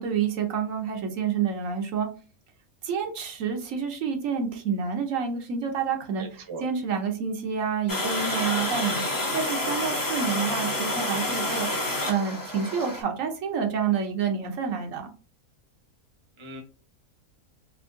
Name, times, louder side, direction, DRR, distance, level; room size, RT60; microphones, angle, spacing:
voice 1, 0.0-2.1 2.8-15.1, right 6 dB, 70° right, 4 dB, 1.1 m, -28 dB
voice 2, 6.1-6.7 16.4-16.6, right 2 dB, 25° right, 3 dB, 0.7 m, -39 dB
Water, 7.9-13.0, left 1 dB, 20° left, 0.6 m, -29 dB
3.6 x 2.8 x 2.5 m, 0.35 s
omnidirectional pair, 1.4 m